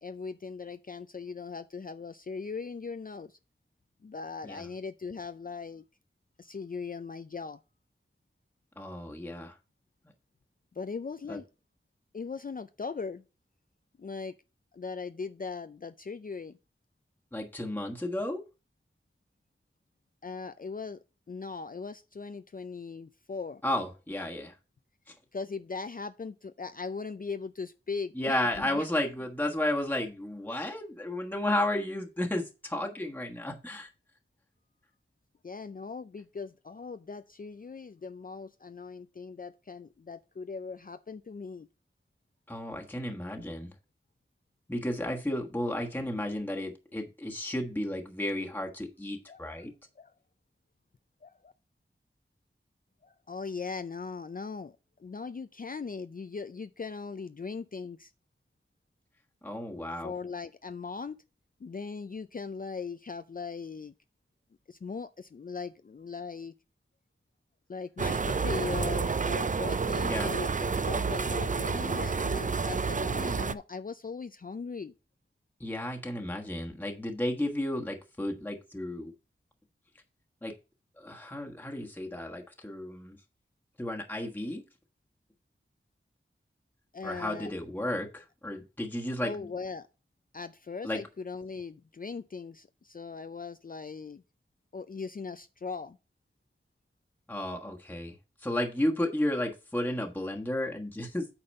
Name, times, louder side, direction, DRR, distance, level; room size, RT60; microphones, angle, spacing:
voice 1, 0.0-3.4 4.0-5.8 6.4-7.6 10.8-11.5 12.1-13.2 14.0-14.3 14.7-16.6 20.2-21.0 21.3-23.6 25.3-28.8 35.4-41.7 49.3-49.5 50.0-50.1 51.2-51.5 53.0-58.1 59.7-61.2 61.6-63.9 64.7-66.5 67.7-74.9 86.9-87.5 89.2-89.9 90.3-94.2 94.7-96.0, left 4 dB, 45° left, 0.4 m, -39 dB
voice 2, 8.8-9.6 11.3-11.4 17.3-18.4 23.6-24.5 25.1-25.2 28.1-33.9 42.5-43.7 44.7-49.7 59.4-60.1 70.0-70.3 75.6-79.1 80.4-80.5 81.0-83.2 83.8-84.6 87.0-89.5 90.8-91.0 97.3-101.3, left 1 dB, 10° left, 1.3 m, -33 dB
sound 1, 68.0-73.5, right 5 dB, 40° right, 0.4 m, -29 dB
8.7 x 4.1 x 5.3 m
wide cardioid pair, 65°, 21 cm